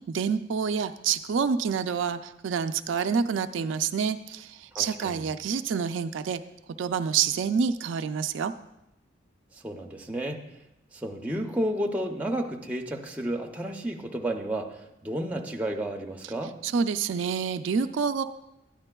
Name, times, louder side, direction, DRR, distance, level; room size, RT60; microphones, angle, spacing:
voice 1, 0.1-6.4 6.8-8.5 16.6-18.2, right 6 dB, 70° right, 9 dB, 0.3 m, -27 dB
voice 2, 4.7-5.3 9.6-10.5 10.9-16.6, right 1 dB, 10° right, 2 dB, 0.6 m, -32 dB
12.5 x 9.7 x 2.2 m, 0.88 s
head